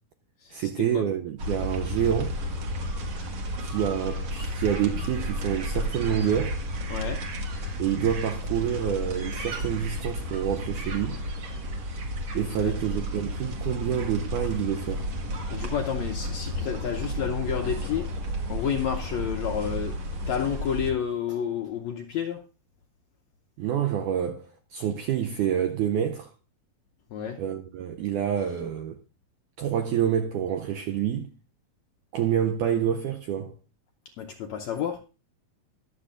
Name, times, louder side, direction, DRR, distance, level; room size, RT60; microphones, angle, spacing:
voice 1, 0.5-2.4 3.6-6.6 7.8-11.2 12.3-15.1 23.6-26.3 27.4-29.0 29.6-31.3 32.1-33.5, right 9 dB, 85° right, 1.7 m, -27 dB
sound 1, 1.4-20.9, equal, 50° right, 2.5 m, -32 dB
voice 2, 15.5-18.1 18.5-19.9 20.3-22.4 27.1-27.4 34.2-35.0, left 8 dB, 90° left, 1.5 m, -30 dB
22.5 x 7.4 x 2.5 m
omnidirectional pair, 4.3 m